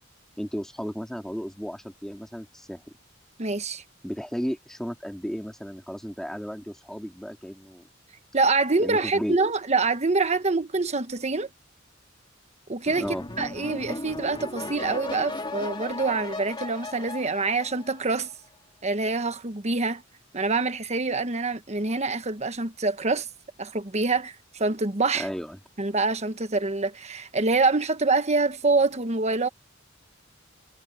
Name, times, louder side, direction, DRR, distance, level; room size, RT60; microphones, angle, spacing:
voice 1, 0.4-2.8 4.0-7.9 8.8-9.5 13.0-13.2 25.1-25.6, equal, 5° left, 3.2 m, -34 dB
voice 2, 3.4-3.8 8.3-11.5 12.7-13.1 13.4-18.3 18.8-20.0 20.3-23.3 23.6-25.3 25.8-29.5, right 3 dB, 35° right, 1.2 m, -25 dB
sound 1, 12.9-18.3, left 2 dB, 25° left, 2.7 m, -36 dB
head